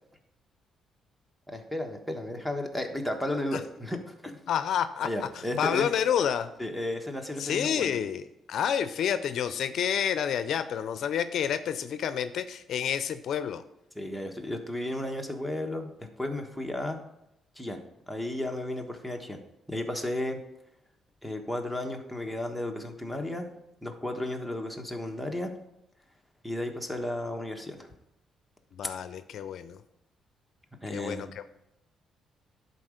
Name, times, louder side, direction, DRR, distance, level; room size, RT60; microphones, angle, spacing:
voice 1, 1.5-4.4 5.0-5.9 6.6-8.0 14.0-15.9 16.2-17.0 17.6-17.8 18.1-19.4 19.7-20.4 21.2-23.5 23.8-25.5 26.4-27.9 30.8-31.3, left 1 dB, ahead, 4 dB, 1.2 m, -33 dB
voice 2, 4.5-5.1 5.4-6.5 7.4-13.6 28.7-29.8 30.9-31.4, left 8 dB, 70° left, 11 dB, 0.4 m, -29 dB
10.5 x 4.1 x 5.0 m, 0.86 s
cardioid pair, 90°, 0 cm